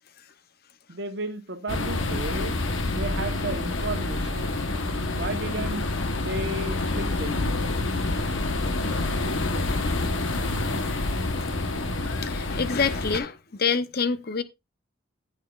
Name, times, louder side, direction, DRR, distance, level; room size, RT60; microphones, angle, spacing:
voice 1, 0.9-2.5 2.9-4.6 5.1-7.3, right 2 dB, 50° right, 1.1 m, -33 dB
sound 1, 1.7-13.2, left 2 dB, 65° left, 1.1 m, -27 dB
voice 2, 10.6-11.0 12.2-14.4, left 5 dB, 45° left, 0.7 m, -27 dB
13.5 x 7.4 x 2.4 m
head